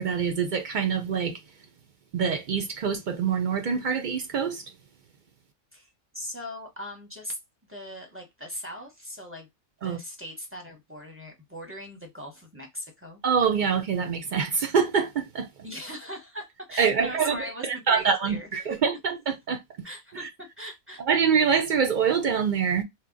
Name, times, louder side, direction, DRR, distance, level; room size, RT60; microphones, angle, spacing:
voice 1, 0.0-1.4 2.1-4.7 9.8-10.0 13.2-15.5 16.8-19.6 20.1-20.3 21.1-22.8, right 6 dB, 60° right, 0.5 m, -25 dB
voice 2, 5.7-7.4 7.7-9.5 9.8-13.2 15.6-18.8 19.8-21.0, equal, 10° right, 0.7 m, -40 dB
2.8 x 2.2 x 3.7 m
omnidirectional pair, 1.3 m